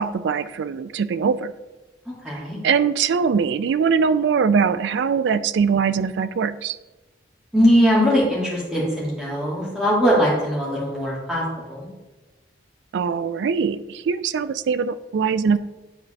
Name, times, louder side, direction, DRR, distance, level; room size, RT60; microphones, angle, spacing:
voice 1, 0.0-1.5 2.6-6.8 12.9-15.6, right 6 dB, 75° right, 14 dB, 0.3 m, -22 dB
voice 2, 2.2-2.6 7.5-11.9, equal, 5° right, -7 dB, 2.0 m, -20 dB
9.8 x 4.0 x 3.3 m, 1.1 s
head